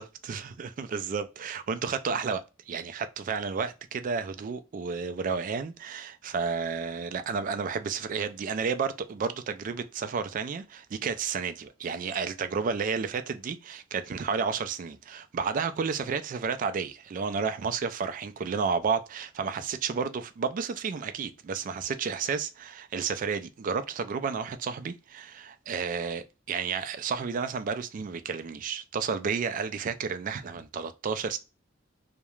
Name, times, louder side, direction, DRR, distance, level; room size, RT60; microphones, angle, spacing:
voice 1, 0.0-31.4, right 5 dB, 45° right, 0.3 m, -31 dB
2.3 x 2.1 x 3.0 m
head